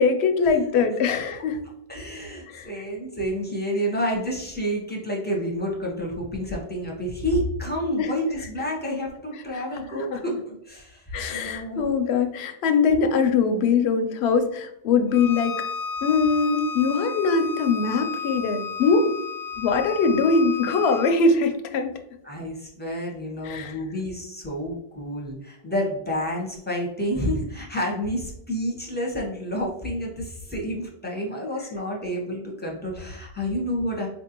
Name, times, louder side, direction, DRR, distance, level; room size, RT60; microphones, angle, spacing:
voice 1, 0.0-1.6 2.5-2.7 8.0-8.1 9.5-9.6 9.9-10.2 11.1-15.6 16.0-19.1 19.6-21.9 23.4-23.8, left 4 dB, 85° left, 6 dB, 0.8 m, -22 dB
voice 2, 1.9-12.0 22.2-34.1, equal, 10° left, -2 dB, 0.8 m, -29 dB
Bowed string instrument, 15.1-21.2, left 5 dB, 50° left, 0.5 m, -33 dB
4.2 x 2.6 x 2.8 m, 0.79 s
omnidirectional pair, 1.1 m